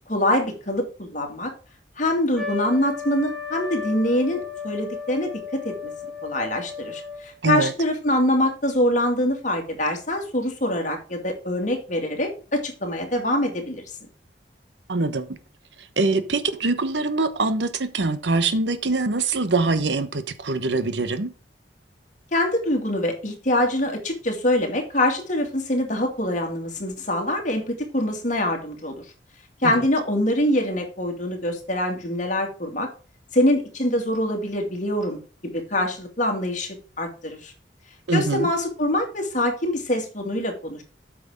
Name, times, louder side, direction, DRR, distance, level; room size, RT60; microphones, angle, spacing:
voice 1, 0.1-1.5 2.0-5.9 6.2-13.8 22.3-29.0 29.6-32.9 33.3-37.5 38.1-40.8, left 1 dB, 45° left, 2.3 m, -24 dB
Trumpet, 2.3-7.4, left 6 dB, ahead, 2.9 m, -34 dB
voice 2, 14.9-15.3 16.0-21.3 29.6-29.8 38.1-38.5, right 3 dB, 85° right, 1.0 m, -23 dB
8.4 x 6.2 x 4.9 m
head